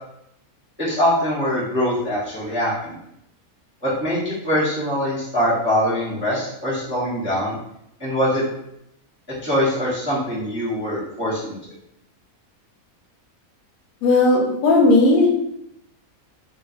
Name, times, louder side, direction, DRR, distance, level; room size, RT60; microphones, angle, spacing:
voice 1, 0.8-3.0 3.8-7.6 8.0-8.4 9.4-11.5, equal, 15° right, -9 dB, 0.4 m, -23 dB
voice 2, 14.0-15.4, left 2 dB, 85° left, 0 dB, 1.1 m, -16 dB
2.6 x 2.5 x 2.4 m, 0.79 s
omnidirectional pair, 1.5 m